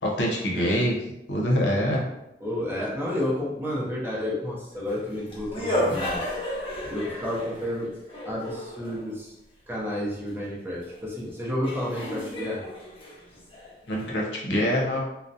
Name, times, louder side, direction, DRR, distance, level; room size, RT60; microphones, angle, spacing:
voice 1, 0.0-0.9 1.3-2.0 13.9-15.0, equal, 90° left, -2 dB, 0.6 m, -24 dB
voice 2, 2.4-6.2 6.9-7.9 8.2-9.3 9.7-12.6, left 1 dB, 15° right, -6 dB, 0.6 m, -31 dB
sound 1, 4.8-9.1 11.0-11.1 11.6-14.1, left 1 dB, 30° left, 0.6 m, -32 dB
2.4 x 2.0 x 2.6 m, 0.91 s
head